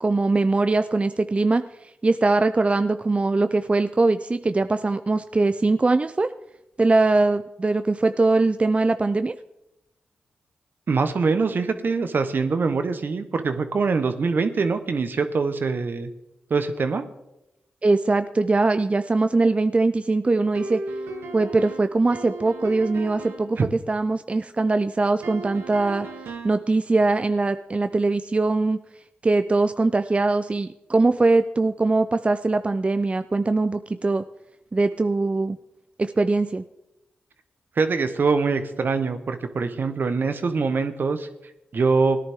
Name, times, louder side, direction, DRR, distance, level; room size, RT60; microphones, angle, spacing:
voice 1, 0.0-6.3 6.8-9.3 17.8-20.8 21.3-23.6 23.9-26.1 26.4-28.8 29.2-34.2 34.7-35.6 36.0-36.6, right 3 dB, 30° right, 10 dB, 0.5 m, -21 dB
voice 2, 10.9-16.1 16.5-17.0 23.6-23.7 37.8-41.3 41.7-42.2, right 4 dB, 60° right, 9 dB, 1.0 m, -23 dB
sound 1, 20.5-23.5 25.2-26.7, right 3 dB, 85° right, 1.1 m, -36 dB
17.5 x 10.5 x 3.6 m, 0.90 s
supercardioid pair, 40°, 4 cm